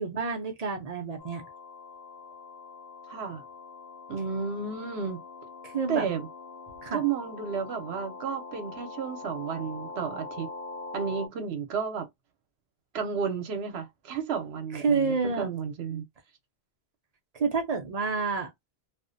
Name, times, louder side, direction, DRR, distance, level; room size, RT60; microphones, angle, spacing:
voice 1, 0.0-1.4 5.6-6.1 6.8-7.0 14.7-15.5 17.3-18.5, right 4 dB, 50° right, 0.5 m, -28 dB
sound 1, 1.2-11.3, left 3 dB, 70° left, 0.9 m, -43 dB
voice 2, 3.1-3.4 4.1-5.2 5.9-6.3 6.9-10.5 10.9-12.1 12.9-16.1, right 6 dB, 80° right, 0.9 m, -32 dB
2.4 x 2.1 x 2.5 m
omnidirectional pair, 1.1 m